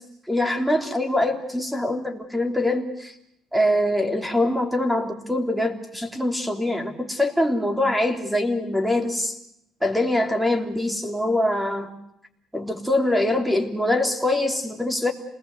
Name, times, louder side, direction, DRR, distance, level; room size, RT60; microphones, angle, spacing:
voice 1, 0.3-3.1 3.5-9.4 9.8-11.9 12.5-15.1, left 1 dB, 5° right, 5 dB, 3.2 m, -23 dB
27.5 x 19.5 x 8.0 m, 0.78 s
cardioid pair, 105°, 0 cm